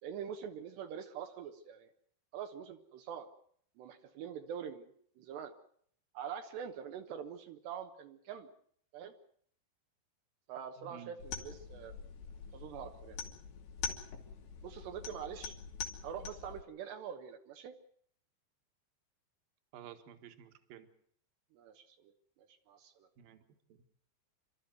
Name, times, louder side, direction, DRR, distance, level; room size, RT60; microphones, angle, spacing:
voice 1, 0.0-1.9 2.3-3.3 3.8-4.9 5.2-5.5 6.1-8.5 8.9-9.1 10.5-11.9 12.5-13.2 14.6-15.5 16.0-17.8 21.5-22.1 22.4-23.1, right 8 dB, 75° right, 4 dB, 3.2 m, -44 dB
voice 2, 10.8-11.2 19.7-20.9 23.2-23.4 23.7-23.8, right 9 dB, 60° right, 7 dB, 3.1 m, -52 dB
sound 1, 11.2-16.6, left 6 dB, 80° left, 4.6 m, -44 dB
28.0 x 13.0 x 9.4 m, 0.63 s
omnidirectional pair, 5.1 m